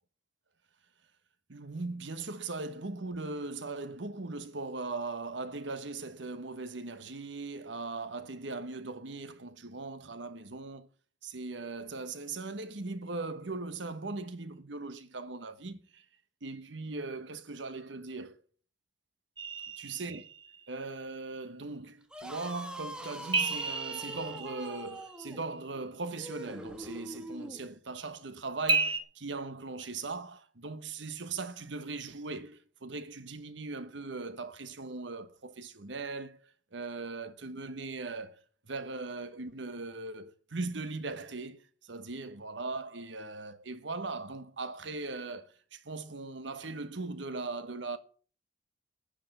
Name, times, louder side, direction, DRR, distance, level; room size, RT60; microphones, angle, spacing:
voice 1, 1.5-10.9 11.2-16.0 16.4-18.4 19.8-20.2 20.7-48.0, right 3 dB, 85° right, 1.2 m, -39 dB
sound 1, 19.4-20.7 23.3-25.3 28.7-29.0, right 4 dB, 25° right, 1.5 m, -32 dB
sound 2, 22.0-27.6, right 1 dB, 5° right, 1.3 m, -44 dB
10.0 x 8.6 x 8.0 m
head